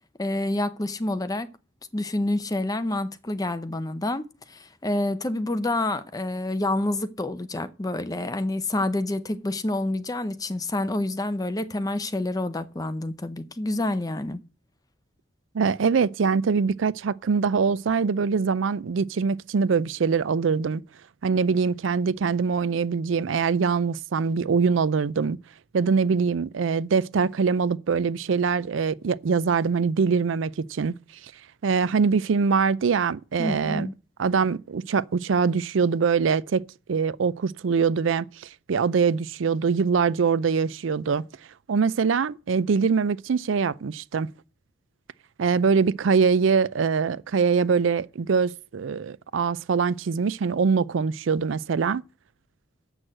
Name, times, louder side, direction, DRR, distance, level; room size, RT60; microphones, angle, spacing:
voice 1, 0.2-1.5 1.9-14.4 33.4-33.9, left 2 dB, 20° left, 0.7 m, -28 dB
voice 2, 15.5-20.8 21.2-25.4 25.7-30.9 31.6-33.9 34.2-36.6 36.9-41.2 41.7-44.3 45.4-52.0, right 5 dB, 75° right, 0.4 m, -23 dB
8.0 x 6.3 x 7.5 m
head